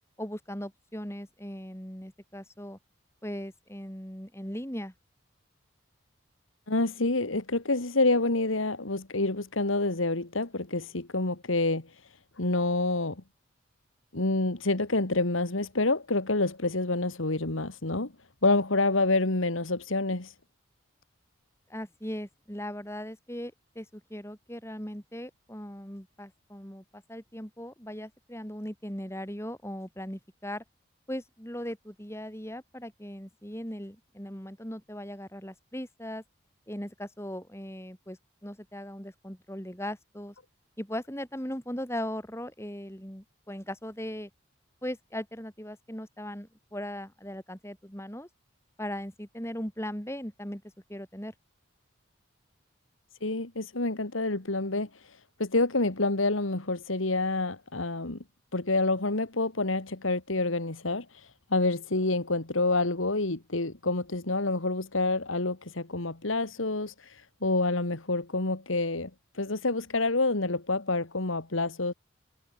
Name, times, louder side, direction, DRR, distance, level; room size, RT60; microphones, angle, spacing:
voice 1, 0.2-2.8 3.2-4.9 21.7-30.6 31.1-36.2 36.7-40.3 40.8-44.3 44.8-48.3 48.8-50.6 50.9-51.3, equal, 15° left, 4.8 m, -38 dB
voice 2, 6.7-11.9 12.4-13.2 14.1-18.1 18.4-20.3 53.2-54.9 55.4-58.2 58.5-71.9, left 2 dB, 85° left, 2.2 m, -28 dB
head